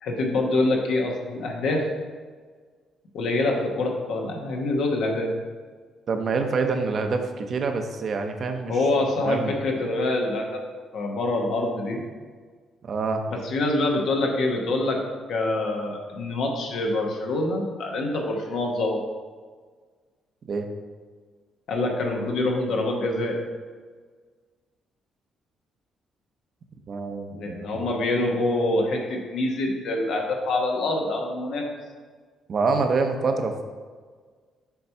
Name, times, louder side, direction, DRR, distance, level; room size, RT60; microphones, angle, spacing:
voice 1, 0.0-1.8 3.1-5.3 8.7-10.7 10.9-12.0 13.3-15.0 15.3-19.0 21.7-23.4 27.3-31.7, left 2 dB, 75° left, 1 dB, 1.2 m, -25 dB
voice 2, 6.1-8.7 9.3-9.5 12.8-13.2 20.5-20.7 26.9-27.8 32.5-33.6, right 4 dB, 50° right, 5 dB, 0.7 m, -26 dB
7.0 x 3.1 x 5.6 m, 1.5 s
cardioid pair, 90°, 0 cm